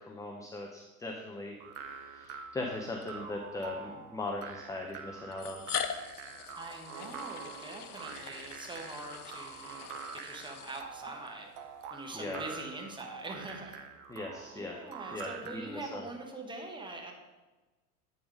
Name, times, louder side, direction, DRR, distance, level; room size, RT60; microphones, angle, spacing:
voice 1, 0.0-1.6 1.9-5.6 12.1-12.4 14.1-14.9 15.1-16.0, left 2 dB, 10° left, 1 dB, 0.6 m, -39 dB
sound 1, 1.6-15.8, right 7 dB, 50° right, 0.8 m, -46 dB
sound 2, 1.8-2.0 3.0-3.1 4.3-4.4 5.3-11.3, left 8 dB, 85° left, 0.6 m, -42 dB
voice 2, 6.6-11.5 11.9-13.8 14.5-17.1, right 2 dB, 10° right, 2 dB, 1.2 m, -44 dB
8.5 x 4.1 x 5.0 m, 1.2 s
figure-of-eight pair, 85°, 44 cm